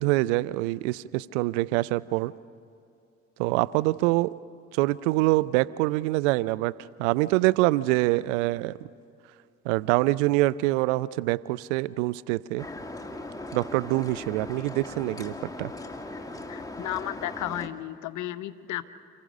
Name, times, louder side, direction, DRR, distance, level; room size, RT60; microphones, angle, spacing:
voice 1, 0.0-2.3 3.4-4.3 4.7-8.8 9.7-12.7 13.5-15.7, right 19 dB, 75° right, 18 dB, 0.5 m, -25 dB
sound 1, 12.6-17.7, left 2 dB, 10° left, 1.9 m, -39 dB
voice 2, 16.5-18.8, left 13 dB, 55° left, 12 dB, 1.0 m, -33 dB
29.0 x 15.0 x 6.4 m, 2.5 s
figure-of-eight pair, 50°, 36 cm